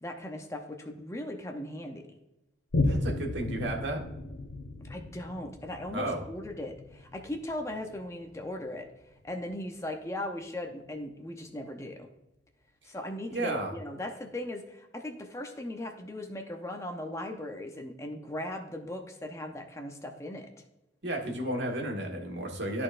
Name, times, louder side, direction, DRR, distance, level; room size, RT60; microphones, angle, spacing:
voice 1, 0.0-2.2 4.8-12.1 12.8-20.5, left 1 dB, 15° left, 4 dB, 0.6 m, -38 dB
Boom, 2.7-9.6 10.2-10.3, left 2 dB, 85° left, 0.8 m, -35 dB
voice 2, 2.8-4.0 5.9-6.2 13.3-13.7 21.0-22.8, right 1 dB, 75° right, 0 dB, 1.5 m, -33 dB
12.5 x 4.3 x 2.5 m, 0.93 s
head